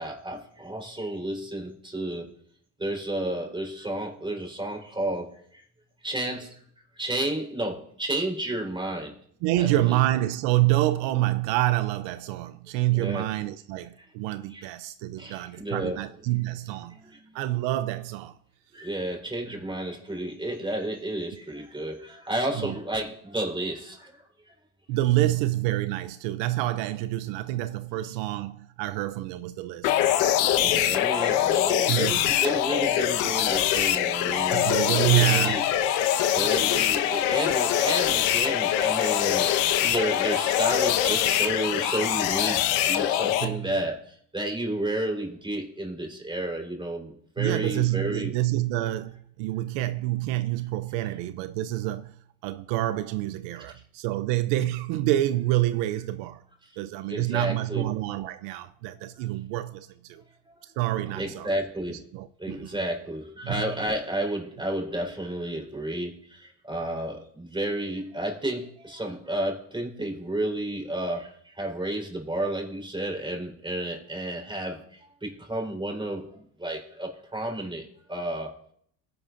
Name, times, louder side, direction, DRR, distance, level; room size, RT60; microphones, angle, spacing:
voice 1, 0.0-2.3 2.8-5.6 6.0-6.7 7.0-9.1 9.6-10.0 12.9-13.3 14.0-14.1 14.5-14.7 15.2-16.0 16.9-17.4 18.7-24.5 30.5-35.6 36.3-48.3 53.6-53.8 56.6-56.7 57.1-57.9 58.9-59.3 60.1-60.6 61.1-62.0 62.4-78.5, right 1 dB, 10° right, 4.0 m, -32 dB
voice 2, 9.4-17.0 17.3-18.4 22.6-22.7 24.9-29.9 30.6-30.8 31.9-32.2 34.5-35.6 43.4-43.7 47.4-52.2 52.4-56.4 56.8-60.2 60.8-61.5 61.9-62.7 63.4-63.6, right 16 dB, 75° right, 0.7 m, -27 dB
sound 1, 29.8-43.4, left 11 dB, 75° left, 1.2 m, -23 dB
19.5 x 10.5 x 2.6 m
supercardioid pair, 95°, 44 cm